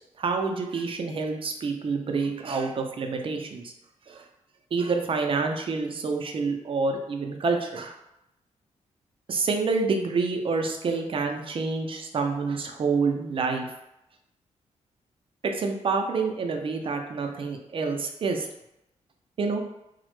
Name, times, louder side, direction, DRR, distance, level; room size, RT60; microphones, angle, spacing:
voice 1, 0.2-3.7 4.1-4.2 4.7-8.0 9.3-13.7 15.4-18.5 19.4-19.6, right 4 dB, 45° right, 4 dB, 0.4 m, -27 dB
2.0 x 2.0 x 2.9 m, 0.86 s
cardioid pair, 75°, 13 cm